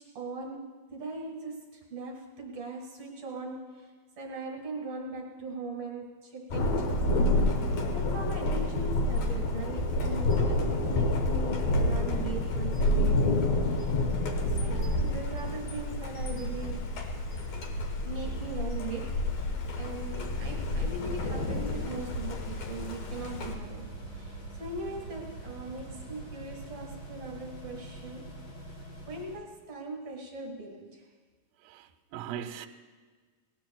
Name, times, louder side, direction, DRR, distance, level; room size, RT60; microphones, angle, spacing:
voice 1, 0.0-14.0 14.4-16.9 18.0-23.9 24.1-28.3 29.1-31.1, right 3 dB, 55° right, 2.3 m, -40 dB
Thunder, 6.5-23.5, left 2 dB, 60° left, 2.0 m, -29 dB
sound 1, 20.1-29.4, right 2 dB, 45° left, 4.2 m, -44 dB
voice 2, 31.7-32.7, right 9 dB, 80° right, 2.3 m, -39 dB
19.5 x 19.0 x 2.3 m
omnidirectional pair, 4.3 m